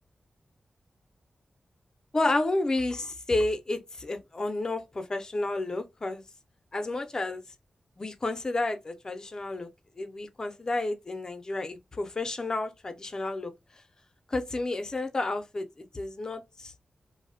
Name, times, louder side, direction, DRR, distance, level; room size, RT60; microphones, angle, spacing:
voice 1, 2.1-6.2 6.7-7.4 8.0-9.7 10.0-13.5 14.3-16.7, left 2 dB, 35° left, 0.5 m, -31 dB
2.6 x 2.0 x 2.6 m
wide cardioid pair, 110°, 2 cm